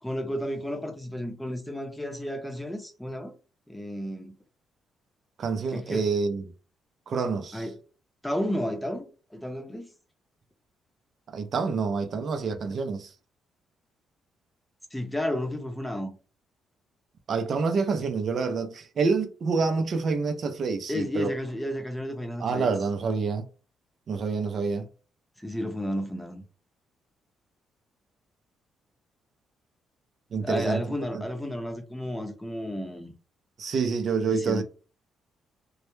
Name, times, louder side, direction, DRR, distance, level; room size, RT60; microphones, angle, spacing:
voice 1, 0.0-3.3 3.7-4.3 5.7-6.1 7.5-7.8 8.2-9.9 14.9-16.2 20.9-22.7 25.4-26.4 30.4-33.1 34.3-34.6, equal, 5° left, 0.6 m, -32 dB
voice 2, 5.4-6.4 7.1-7.7 11.3-13.1 17.3-21.3 22.4-23.5 24.1-24.9 30.3-30.8 31.1-31.2 33.6-34.6, right 4 dB, 55° right, 0.4 m, -27 dB
2.1 x 2.1 x 3.0 m
cardioid pair, 90°, 0 cm